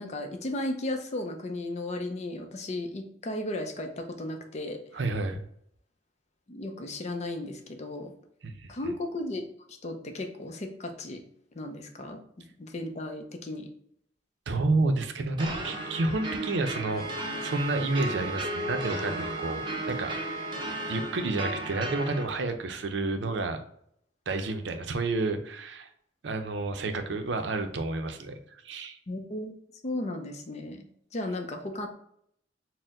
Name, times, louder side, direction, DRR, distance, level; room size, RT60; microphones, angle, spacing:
voice 1, 0.0-4.8 6.5-8.1 8.7-9.4 9.7-11.2 11.5-12.2 12.6-13.7 29.1-29.5 29.8-30.9 31.1-31.9, left 1 dB, 40° left, 5 dB, 0.5 m, -35 dB
voice 2, 4.9-5.4 8.4-8.9 14.5-17.1 17.4-20.2 20.9-23.6 24.3-25.9 26.2-28.4 28.6-29.0, right 2 dB, 80° right, 7 dB, 0.5 m, -30 dB
sound 1, 15.4-22.2, right 1 dB, 25° right, 0.6 m, -35 dB
sound 2, 16.9-21.1, right 2 dB, 20° left, 0.9 m, -38 dB
4.3 x 2.1 x 3.6 m, 0.69 s
head